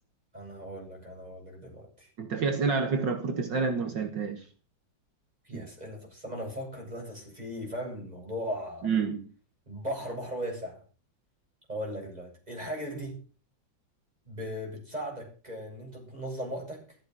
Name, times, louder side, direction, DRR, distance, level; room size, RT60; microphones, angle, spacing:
voice 1, 0.3-2.1 5.4-8.9 9.7-10.8 11.7-13.2 14.3-17.0, equal, 20° right, 8.0 m, -38 dB
voice 2, 2.2-4.5 5.5-5.7 8.8-9.3, right 5 dB, 70° right, 2.2 m, -28 dB
14.5 x 14.0 x 6.4 m
omnidirectional pair, 2.0 m